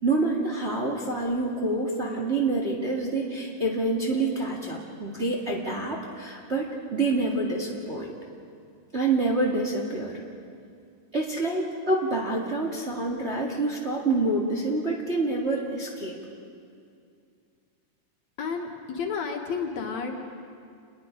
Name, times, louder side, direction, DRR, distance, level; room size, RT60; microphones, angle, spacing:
voice 1, 0.0-8.1 8.9-10.1 11.1-16.1, right 2 dB, 25° right, -1 dB, 1.8 m, -27 dB
voice 2, 18.4-20.2, left 5 dB, 65° left, 2 dB, 2.8 m, -31 dB
28.5 x 21.0 x 5.2 m, 2.4 s
omnidirectional pair, 3.5 m